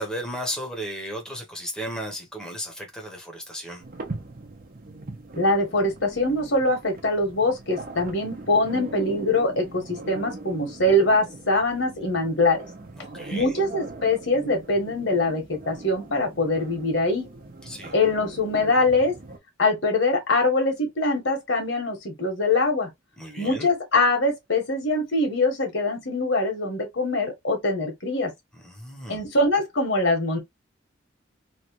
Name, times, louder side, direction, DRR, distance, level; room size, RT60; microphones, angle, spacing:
voice 1, 0.0-3.8 13.0-13.5 17.6-17.9 23.2-23.7 28.5-29.2, equal, 5° left, 0.9 m, -34 dB
sound 1, 3.8-19.4, right 2 dB, 50° right, 0.8 m, -40 dB
voice 2, 5.3-12.6 13.3-17.3 17.9-19.1 19.6-22.9 23.4-28.3 29.1-30.4, left 2 dB, 75° left, 1.5 m, -23 dB
3.2 x 2.4 x 3.0 m
head